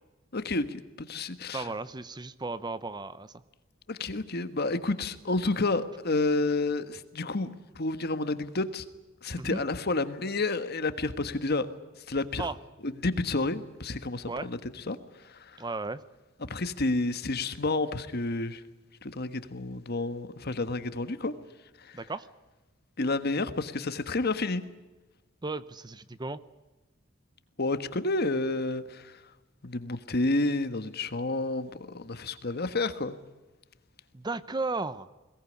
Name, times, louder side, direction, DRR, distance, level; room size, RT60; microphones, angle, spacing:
voice 1, 0.3-1.7 3.9-7.5 7.7-8.8 9.2-11.7 12.1-12.5 12.8-14.6 14.9-15.0 15.3-15.6 16.5-18.6 19.0-21.3 21.8-22.0 23.0-24.6 27.6-29.1 29.6-33.2, left 2 dB, 50° left, 11 dB, 1.5 m, -30 dB
voice 2, 1.5-3.3 9.4-9.6 12.4-12.6 14.3-14.5 15.6-16.0 21.9-22.3 25.4-26.4 34.1-35.1, right 3 dB, 20° right, 15 dB, 0.7 m, -34 dB
22.0 x 18.5 x 9.9 m, 1.1 s
head